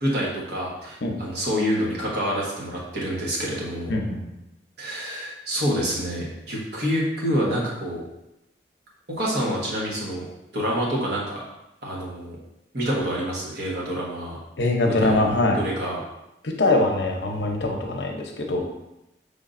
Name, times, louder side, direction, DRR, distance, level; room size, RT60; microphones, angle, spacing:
voice 1, 0.0-3.9 4.8-8.0 9.1-10.3 10.5-11.4 11.8-12.4 12.7-14.4 15.0-15.3 15.6-16.0, equal, 65° right, -4 dB, 1.2 m, -27 dB
voice 2, 3.9-4.3 14.6-15.6 16.4-18.6, left 2 dB, 75° left, 1 dB, 0.7 m, -23 dB
5.0 x 3.5 x 2.5 m, 0.89 s
head